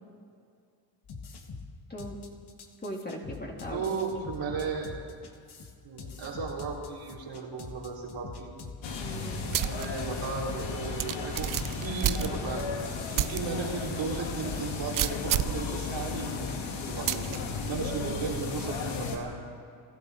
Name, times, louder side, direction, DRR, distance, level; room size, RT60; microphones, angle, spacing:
sound 1, 1.0-13.4, left 4 dB, 55° left, 1.9 m, -44 dB
voice 1, 1.9-2.3 2.8-3.9 9.0-9.5 18.0-18.2, equal, 20° left, -1 dB, 3.2 m, -39 dB
voice 2, 3.7-5.0 5.8-8.5 9.4-19.3, right 4 dB, 70° right, -3 dB, 3.7 m, -36 dB
sound 2, 8.8-19.2, left 4 dB, 75° left, 2.2 m, -35 dB
sound 3, 9.5-9.9 10.3-10.4 11.0-12.7 13.1-13.4 13.8-13.9 14.9-15.6 17.1-17.4, right 12 dB, 45° right, 0.6 m, -29 dB
29.0 x 11.5 x 4.2 m, 2.2 s
supercardioid pair, 75°, 47 cm